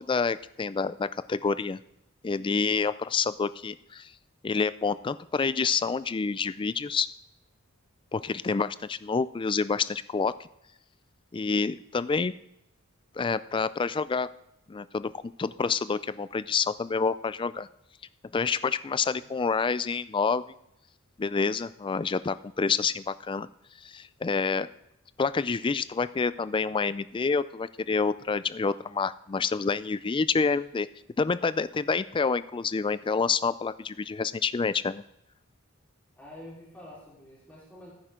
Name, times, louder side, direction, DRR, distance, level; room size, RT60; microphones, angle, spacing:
voice 1, 0.0-1.8 2.2-4.1 4.4-7.1 8.1-10.5 11.3-12.3 13.2-14.3 14.7-15.1 15.4-17.7 18.3-20.4 21.2-23.5 23.8-24.7 25.2-30.9 31.2-35.0, left 5 dB, 25° left, 16 dB, 0.3 m, -28 dB
voice 2, 19.1-19.4 36.2-37.9, left 1 dB, 10° left, -7 dB, 4.0 m, -48 dB
15.5 x 9.4 x 3.7 m, 0.81 s
head